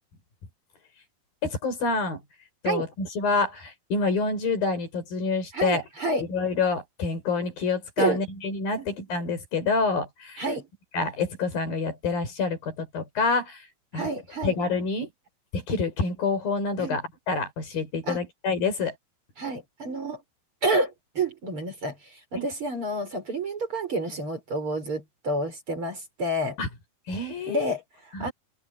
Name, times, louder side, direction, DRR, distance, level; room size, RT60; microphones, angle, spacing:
voice 1, 1.4-2.2 2.6-5.8 6.3-10.4 10.9-13.7 13.9-14.1 14.4-15.1 15.5-19.0 22.4-22.5 26.6-26.7 27.1-27.7 28.1-28.3, left 4 dB, 65° left, 7.0 m, -27 dB
voice 2, 5.5-6.2 8.0-8.2 8.8-8.9 10.4-10.7 13.9-14.6 16.8-17.0 18.0-18.2 19.4-20.2 20.6-26.6 27.5-28.3, right 2 dB, 30° right, 6.3 m, -29 dB
omnidirectional pair, 4.5 m